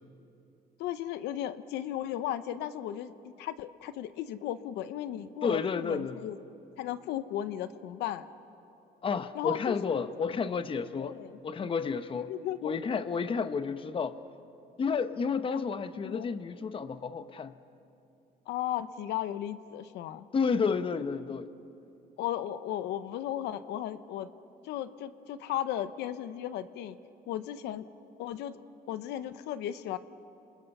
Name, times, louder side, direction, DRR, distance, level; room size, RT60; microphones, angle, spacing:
voice 1, 0.8-6.4 6.8-8.2 9.3-10.0 11.0-11.4 12.3-12.8 15.5-15.6 16.1-16.3 18.5-20.2 22.2-24.3 24.6-27.0 27.3-27.9 28.2-28.6 28.9-30.0, left 11 dB, 85° left, 12 dB, 0.9 m, -35 dB
voice 2, 5.4-6.3 9.0-11.1 11.4-12.3 12.6-14.2 14.8-17.5 20.3-21.5, left 5 dB, 30° left, 11 dB, 0.9 m, -31 dB
30.0 x 27.5 x 5.5 m, 2.7 s
cardioid pair, 110°, 17 cm